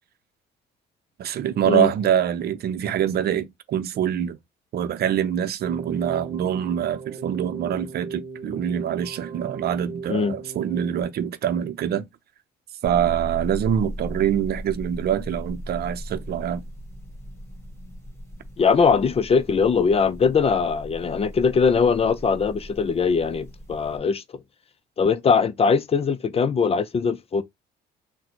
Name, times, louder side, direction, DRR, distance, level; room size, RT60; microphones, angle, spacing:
voice 1, 1.2-4.4 4.7-12.1 12.8-16.6, right 9 dB, 55° right, 0.7 m, -25 dB
Keyboard (musical), 5.6-11.0, right 4 dB, 30° right, 1.3 m, -39 dB
sound 1, 12.8-24.0, equal, 15° left, 1.9 m, -38 dB
voice 2, 18.6-24.2 25.0-27.4, left 5 dB, 30° left, 0.5 m, -21 dB
3.8 x 2.2 x 4.4 m
cardioid pair, 90°, 19 cm